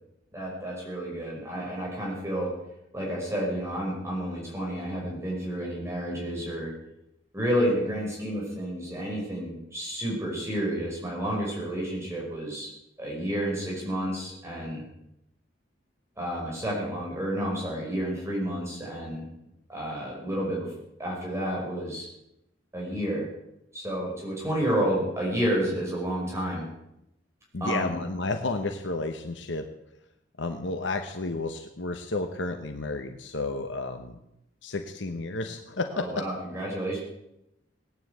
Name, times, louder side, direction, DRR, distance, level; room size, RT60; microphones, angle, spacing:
voice 1, 0.3-2.5 2.9-6.7 7.3-12.7 13.0-14.8 16.2-19.3 19.7-20.7 21.0-22.1 22.7-23.3 23.7-26.7 27.6-28.0 35.9-37.0, equal, 15° right, -3 dB, 5.3 m, -30 dB
voice 2, 27.5-29.7 30.4-34.2 34.6-36.3, left 3 dB, 70° left, 6 dB, 1.1 m, -32 dB
18.0 x 9.6 x 8.1 m, 0.84 s
head